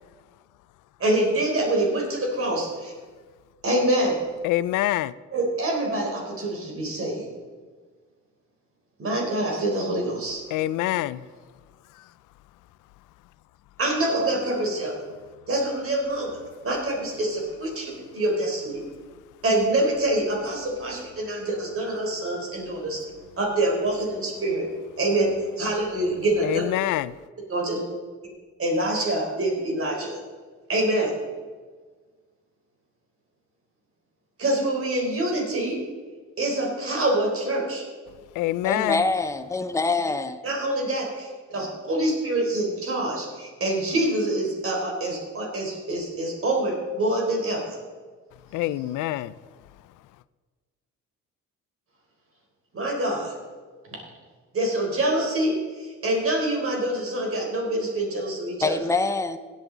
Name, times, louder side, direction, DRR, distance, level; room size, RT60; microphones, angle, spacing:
voice 1, 1.0-2.9 3.6-4.2 5.3-7.3 9.0-10.4 13.8-15.0 15.5-18.8 19.4-23.0 23.4-24.7 25.0-25.3 25.6-26.6 27.5-27.8 28.6-30.2 30.7-31.1 34.4-35.8 36.4-37.8 40.4-47.8 52.7-53.3 54.5-58.8, right 1 dB, 45° right, 3.9 m, -25 dB
voice 2, 4.4-5.1 10.5-11.3 26.4-27.1 38.4-39.0 48.5-49.3, left 15 dB, 85° left, 0.5 m, -25 dB
voice 3, 38.6-40.4 58.6-59.4, left 3 dB, 10° left, 0.7 m, -25 dB
16.0 x 8.4 x 4.0 m
cardioid pair, 90°, 30 cm